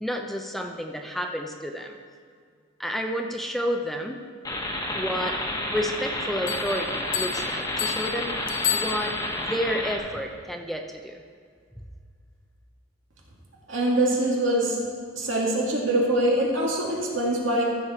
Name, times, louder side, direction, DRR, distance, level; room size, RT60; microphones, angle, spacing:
voice 1, 0.0-2.0 2.8-4.3 4.9-5.4 5.7-8.3 8.7-11.2, equal, ahead, 3 dB, 0.5 m, -30 dB
sound 1, 4.4-10.0, left 1 dB, 20° left, 1.2 m, -30 dB
sound 2, 6.5-9.5, left 9 dB, 70° left, 0.7 m, -31 dB
voice 2, 13.7-14.8 15.1-17.6, right 1 dB, 75° right, -2 dB, 2.2 m, -23 dB
14.5 x 6.5 x 4.3 m, 2.1 s
head